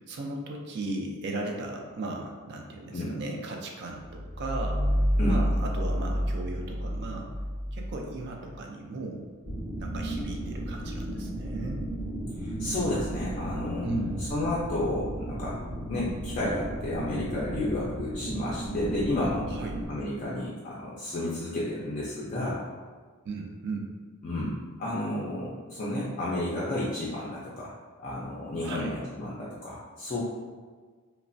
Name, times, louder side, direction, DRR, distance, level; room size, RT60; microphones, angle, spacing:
voice 1, 0.0-4.8 5.2-7.3 7.7-9.2 9.8-11.8 13.8-14.2 19.5-19.8 23.2-23.9 28.6-28.9, right 2 dB, 50° right, 1 dB, 0.4 m, -36 dB
sound 1, 3.9-8.6, equal, 70° right, 0.8 m, -28 dB
sound 2, 9.4-19.8, right 1 dB, 15° right, 0.7 m, -35 dB
voice 2, 12.4-13.9 14.2-15.6 15.9-19.5 19.9-22.7 24.2-27.7 28.0-30.2, left 1 dB, 35° left, -7 dB, 0.4 m, -31 dB
3.1 x 2.1 x 2.5 m, 1.5 s
head